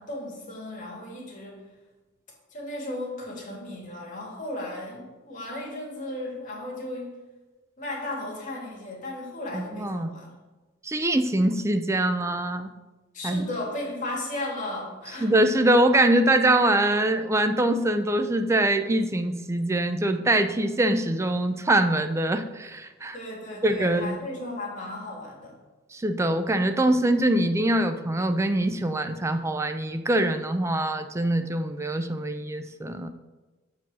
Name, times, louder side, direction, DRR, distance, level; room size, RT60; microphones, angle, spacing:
voice 1, 0.0-1.6 2.5-7.2 7.8-10.3 13.1-15.3 23.1-25.5, left 1 dB, 40° left, -3 dB, 2.2 m, -35 dB
voice 2, 9.5-10.1 10.8-12.7 13.2-13.4 15.2-23.2 23.6-24.2 25.9-33.1, right 1 dB, 15° right, 8 dB, 0.4 m, -23 dB
7.1 x 4.6 x 6.1 m, 1.2 s
head